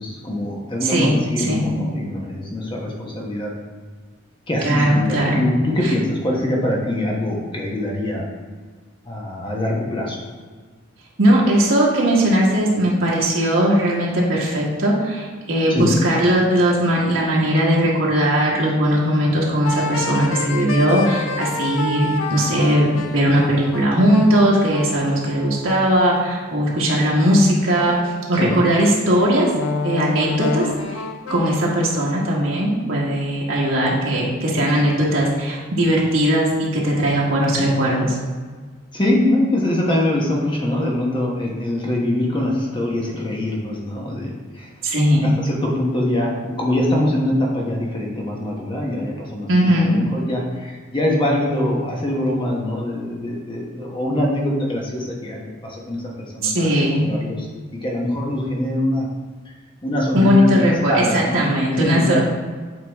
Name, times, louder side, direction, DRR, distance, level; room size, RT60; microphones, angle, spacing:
voice 1, 0.0-3.5 4.5-8.3 9.1-10.2 15.7-15.9 28.3-28.5 38.9-44.7 45.4-56.7 57.0-57.5 57.7-59.1 59.4-59.6 59.8-62.2, left 1 dB, 25° left, -2 dB, 1.1 m, -23 dB
voice 2, 0.8-1.7 4.6-5.4 11.2-29.5 29.8-30.7 31.3-38.2 44.8-45.3 49.5-50.0 56.4-57.1 60.1-62.2, equal, 75° right, -4 dB, 1.5 m, -18 dB
sound 1, 19.6-27.0 27.7-32.2, left 3 dB, 90° left, 0.6 m, -29 dB
7.8 x 3.9 x 3.5 m, 1.5 s
head